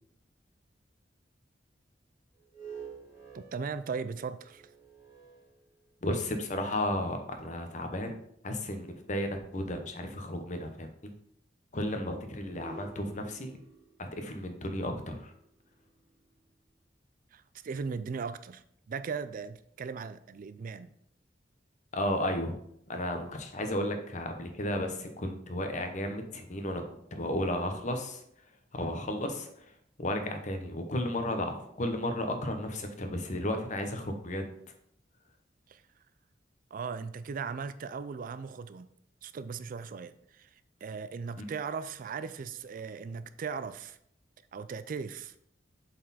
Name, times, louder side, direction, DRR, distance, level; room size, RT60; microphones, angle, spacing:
sound 1, 2.3-6.2 6.9-7.0 12.2-16.5, right 4 dB, 20° right, 2.1 m, -50 dB
voice 1, 3.3-4.6 17.3-20.9 35.7-35.8 36.7-38.9 39.2-44.0 44.5-45.3, right 5 dB, 50° right, 13 dB, 0.4 m, -38 dB
voice 2, 6.0-8.1 8.4-11.1 11.7-13.6 14.0-15.3 21.9-22.5 22.9-26.8 27.1-28.2 28.7-29.7 30.0-34.4, left 1 dB, 45° left, 6 dB, 1.0 m, -33 dB
7.5 x 4.3 x 4.1 m, 0.71 s
head